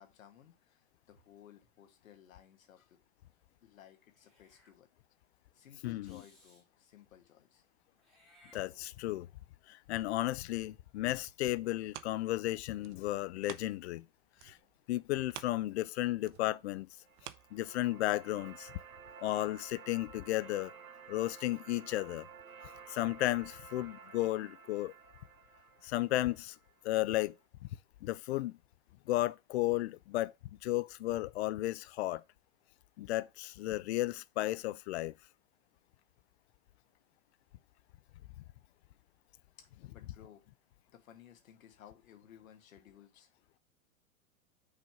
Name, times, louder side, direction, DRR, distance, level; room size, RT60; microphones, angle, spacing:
voice 1, 0.0-3.0 3.6-4.9 5.5-7.6 39.6-39.7 39.9-40.4 40.9-43.3, left 9 dB, 70° left, 1.9 m, -58 dB
Meow / Hiss, 4.1-4.8 6.0-6.7 8.0-9.2, left 1 dB, ahead, 3.0 m, -63 dB
voice 2, 5.8-6.2 8.5-9.3 9.7-14.0 14.4-14.6 14.9-16.9 17.5-18.7 19.2-20.7 21.1-22.3 22.9-24.9 25.8-26.6 26.8-27.3 28.0-28.6 29.1-30.3 30.6-32.2 33.0-35.1 39.8-39.9, left 16 dB, 50° left, 0.5 m, -34 dB
sound 1, 10.9-14.1 14.4-18.2 18.7-18.8, right 13 dB, 35° right, 0.5 m, -52 dB
sound 2, 17.0-27.1, right 6 dB, 85° right, 1.0 m, -53 dB
6.4 x 4.0 x 6.0 m
hypercardioid pair, 105°, 42 cm